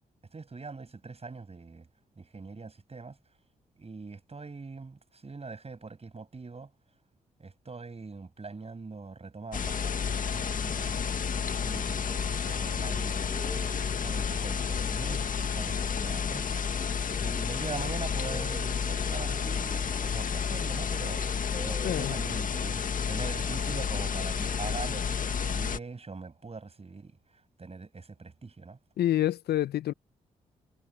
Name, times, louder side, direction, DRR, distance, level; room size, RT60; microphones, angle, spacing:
voice 1, 0.3-1.9 2.2-3.2 3.8-6.7 7.4-16.9 17.2-28.8, right 4 dB, 35° right, 6.7 m, -42 dB
sound 1, 9.5-25.8, left 6 dB, 50° left, 1.9 m, -31 dB
Singing, 11.6-16.3 16.7-20.7 21.2-22.3, right 2 dB, 20° right, 7.2 m, -49 dB
voice 2, 21.8-22.2 29.0-29.9, left 12 dB, 70° left, 1.0 m, -27 dB
hypercardioid pair, 40°, 17 cm